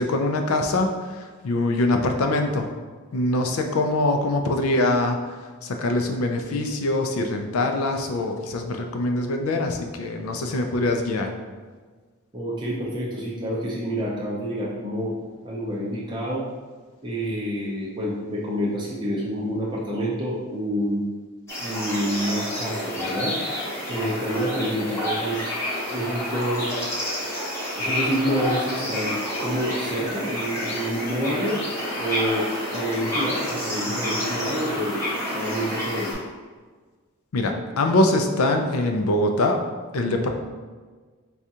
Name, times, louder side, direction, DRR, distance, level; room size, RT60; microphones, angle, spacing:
voice 1, 0.0-2.7 3.1-11.3 37.3-39.6 39.9-40.3, left 2 dB, 75° left, 4 dB, 0.4 m, -23 dB
voice 2, 12.3-15.2 15.4-16.4 17.0-21.0 21.6-23.4 23.9-25.5 25.9-26.7 27.8-31.6 32.0-35.0 35.3-36.2, equal, 20° right, -5 dB, 0.5 m, -28 dB
sound 1, 21.5-36.1, left 1 dB, 15° left, 0.9 m, -29 dB
4.8 x 2.3 x 2.7 m, 1.5 s
head